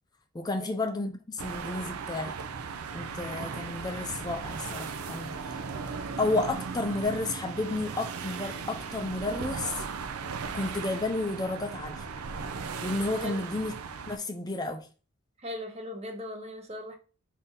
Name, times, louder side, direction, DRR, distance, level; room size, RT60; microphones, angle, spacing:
voice 1, 0.3-2.4 2.9-5.6 6.2-9.8 10.5-12.1 12.8-13.7 14.1-14.9, left 2 dB, 20° left, 0.4 m, -32 dB
sound 1, 1.4-14.2, right 5 dB, 85° right, 0.5 m, -37 dB
voice 2, 15.4-17.0, left 1 dB, 30° right, 0.6 m, -38 dB
4.1 x 2.7 x 3.6 m
head